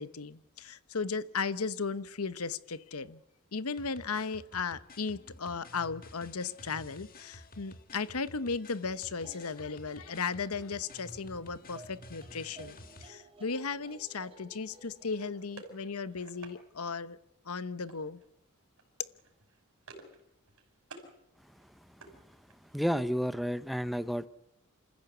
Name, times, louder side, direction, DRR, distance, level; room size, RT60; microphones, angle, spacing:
voice 1, 0.0-3.2 3.5-17.2 17.4-18.2, left 5 dB, 90° left, 15 dB, 1.1 m, -36 dB
sound 1, 3.7-13.1, left 1 dB, 40° left, 1.9 m, -52 dB
sound 2, 8.9-15.3, right 2 dB, 25° right, 3.8 m, -56 dB
sound 3, 15.2-16.6 17.9-18.3 18.6-18.8 19.1-20.2 20.5-21.1 21.5-22.8, right 3 dB, 70° right, 5.7 m, -52 dB
voice 2, 22.7-24.3, equal, ahead, 14 dB, 0.7 m, -31 dB
27.5 x 15.0 x 8.1 m, 0.85 s
head